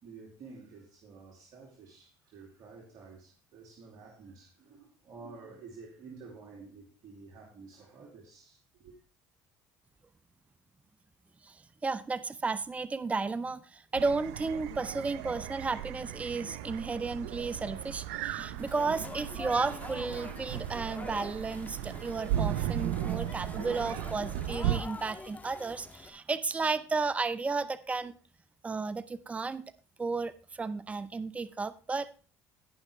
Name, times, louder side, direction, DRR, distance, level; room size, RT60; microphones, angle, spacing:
voice 1, 0.0-9.0, right 4 dB, 55° right, 2.5 m, -51 dB
voice 2, 11.4-28.1 28.6-29.7 30.0-32.1, right 4 dB, 20° right, 0.6 m, -33 dB
sound 1, 13.9-24.8, right 12 dB, 85° right, 0.7 m, -36 dB
sound 2, 18.6-26.1, left 3 dB, 20° left, 1.9 m, -45 dB
17.5 x 5.9 x 3.3 m
supercardioid pair, 85°, 8 cm